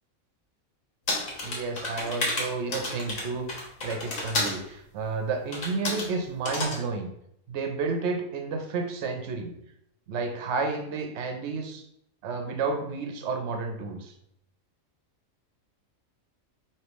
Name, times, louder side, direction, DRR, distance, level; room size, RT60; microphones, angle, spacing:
sound 1, 1.1-4.6 5.5-6.1 6.5-6.8, left 2 dB, 80° left, 1.5 m, -31 dB
voice 1, 1.4-7.1 7.5-9.6 10.1-11.8 12.2-14.1, right 4 dB, 65° right, 5 dB, 0.9 m, -31 dB
5.0 x 3.0 x 3.0 m, 0.77 s
omnidirectional pair, 1.4 m